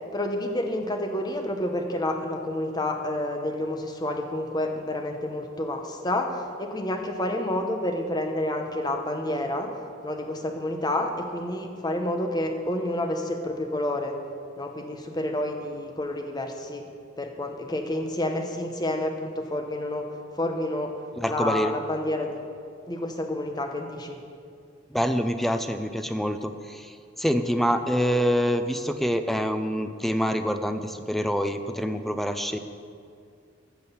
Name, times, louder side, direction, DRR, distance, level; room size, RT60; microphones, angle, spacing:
voice 1, 0.1-9.7 10.0-14.2 14.6-16.8 17.2-20.1 20.4-20.9 21.3-22.4 22.9-24.2, left 1 dB, 20° left, 4 dB, 1.1 m, -29 dB
voice 2, 21.2-21.7 24.9-32.6, equal, ahead, 8 dB, 0.5 m, -26 dB
14.0 x 6.3 x 7.1 m, 2.3 s
head